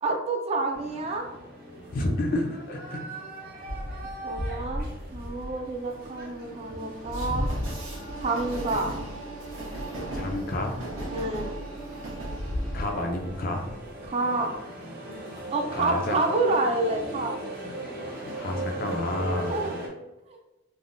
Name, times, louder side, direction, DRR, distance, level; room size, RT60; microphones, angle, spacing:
voice 1, 0.0-1.3 4.2-7.5 8.2-8.9 11.1-11.5 14.0-14.5 15.5-17.4 19.5-19.8 20.3-20.4, right 2 dB, 30° right, 2 dB, 0.3 m, -28 dB
sound 1, 0.7-19.9, right 1 dB, 50° right, 0.8 m, -40 dB
voice 2, 1.9-3.0 10.1-10.8 12.7-13.7 15.7-16.2 18.3-19.6, left 1 dB, 45° left, 2 dB, 0.4 m, -29 dB
Train, 3.7-14.1, equal, 85° right, 0.9 m, -35 dB
3.3 x 2.1 x 2.5 m, 1.0 s
head